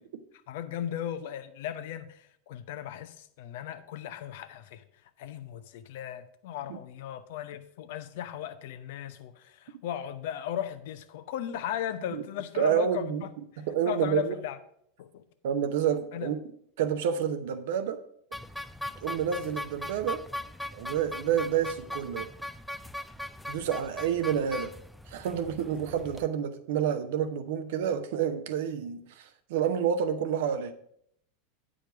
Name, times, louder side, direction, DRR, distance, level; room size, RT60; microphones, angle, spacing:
voice 1, 0.5-4.8 5.2-13.3 13.9-14.6 15.0-15.2 16.1-16.3, left 10 dB, 60° left, 0.7 m, -36 dB
voice 2, 12.6-13.2 13.7-14.3 15.4-16.4 16.8-18.0 19.0-20.2 20.7-22.3 23.5-24.7 25.1-30.7, right 8 dB, 60° right, 0.8 m, -29 dB
sound 1, 18.3-26.3, left 1 dB, ahead, 0.4 m, -40 dB
8.9 x 5.0 x 5.8 m
figure-of-eight pair, 85°, 0 cm